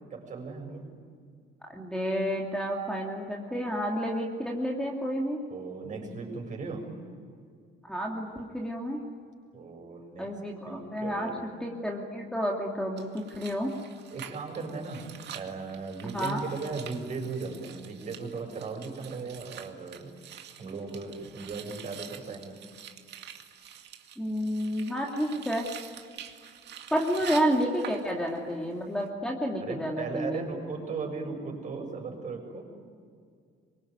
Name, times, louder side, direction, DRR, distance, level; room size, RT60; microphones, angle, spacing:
voice 1, 0.1-0.9 5.5-6.9 9.5-10.3 10.6-11.4 14.1-20.1 20.6-22.6 29.6-32.6, right 4 dB, 40° right, 2 dB, 6.9 m, -37 dB
voice 2, 1.7-5.4 7.8-9.0 10.2-11.3 11.6-13.7 16.0-16.4 24.2-25.6 26.9-30.5, equal, 5° left, -1 dB, 2.6 m, -30 dB
sound 1, 13.0-28.5 28.8-29.1, right 9 dB, 60° right, 2.3 m, -46 dB
26.5 x 23.5 x 9.5 m, 2.1 s
cardioid pair, 145°, 20 cm